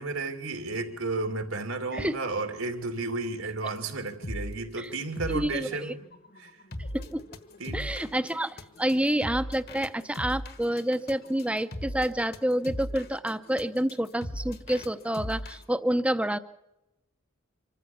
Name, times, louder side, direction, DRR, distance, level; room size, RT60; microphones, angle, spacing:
voice 1, 0.0-6.0 6.4-6.5 7.6-7.9, right 3 dB, 85° right, 5 dB, 2.9 m, -33 dB
sound 1, 3.8-3.9 4.1-4.6 5.0-15.6, equal, 50° left, 1.4 m, -38 dB
voice 2, 5.3-5.9 6.9-7.2 7.7-16.4, right 1 dB, 5° right, 12 dB, 0.7 m, -28 dB
25.5 x 14.0 x 7.1 m, 0.93 s
head